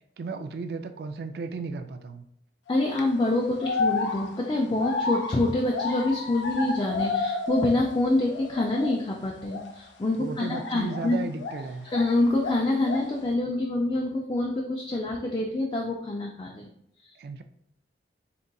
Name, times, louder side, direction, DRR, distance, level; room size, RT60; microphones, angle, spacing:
voice 1, 0.2-2.2 10.2-11.9 17.2-17.4, right 4 dB, 60° right, 9 dB, 0.3 m, -35 dB
sound 1, 2.7-3.0 3.6-8.0 8.2-9.0 9.4-9.7 10.5-12.1 12.4-13.2, left 4 dB, 85° left, 0.5 m, -31 dB
voice 2, 2.7-11.2 11.8-16.7 17.0-17.1, left 2 dB, 25° left, -1 dB, 0.3 m, -26 dB
3.9 x 3.6 x 2.2 m, 0.73 s
head